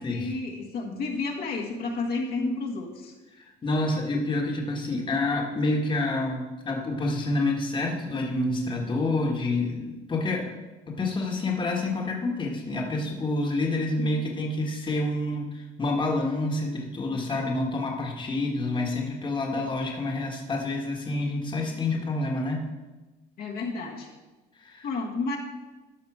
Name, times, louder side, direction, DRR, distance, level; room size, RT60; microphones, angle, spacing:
voice 1, 0.0-3.1 23.4-24.1 24.8-25.4, left 3 dB, 65° left, -1 dB, 1.7 m, -31 dB
voice 2, 3.6-10.5 10.9-22.7 24.6-24.9, left 2 dB, 30° left, 0 dB, 1.6 m, -28 dB
12.5 x 5.1 x 4.9 m, 1.2 s
cardioid pair, 110°, 17 cm